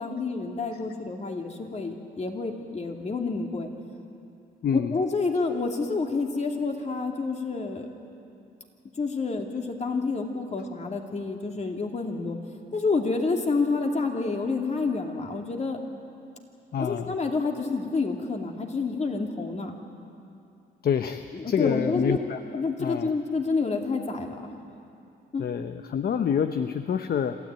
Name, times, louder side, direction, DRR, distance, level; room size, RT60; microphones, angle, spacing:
voice 1, 0.0-3.7 4.9-7.8 9.0-12.4 12.7-15.8 16.8-19.7 21.3-22.2 22.5-24.4 25.3-25.5, left 4 dB, 35° left, 2 dB, 2.7 m, -28 dB
voice 2, 4.6-4.9 16.7-17.1 20.8-22.4 22.8-23.1 25.4-27.4, left 7 dB, 50° left, 9 dB, 0.8 m, -27 dB
27.0 x 14.0 x 9.2 m, 2.6 s
cardioid pair, 90°, 20 cm